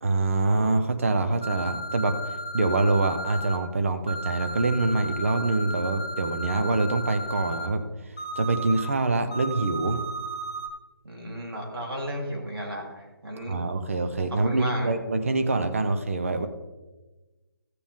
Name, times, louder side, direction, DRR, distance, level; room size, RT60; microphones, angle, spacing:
voice 1, 0.0-2.2 2.5-7.8 8.4-10.0 13.5-16.5, right 3 dB, 35° right, 8 dB, 0.8 m, -25 dB
sound 1, 1.4-3.6 4.1-7.7 8.2-8.8 9.3-10.7, right 1 dB, 15° left, 0.5 m, -34 dB
voice 2, 11.0-13.6 14.5-15.0, equal, 75° right, -1 dB, 3.8 m, -34 dB
15.5 x 6.9 x 3.7 m, 1.2 s
figure-of-eight pair, 175°, 13 cm